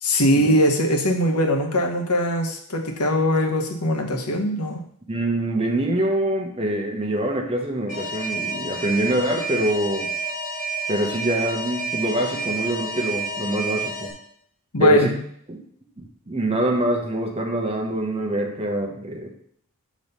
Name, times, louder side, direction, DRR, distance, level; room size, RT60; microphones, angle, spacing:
voice 1, 0.0-4.8 14.7-15.2, equal, 85° left, 3 dB, 1.0 m, -21 dB
voice 2, 5.1-10.1 10.9-14.1 14.8-15.1 15.5-15.6 16.3-19.3, right 1 dB, 25° right, 3 dB, 0.9 m, -25 dB
Alarm, 7.9-14.1, right 3 dB, 35° left, 1.6 m, -29 dB
6.9 x 3.2 x 5.4 m, 0.66 s
head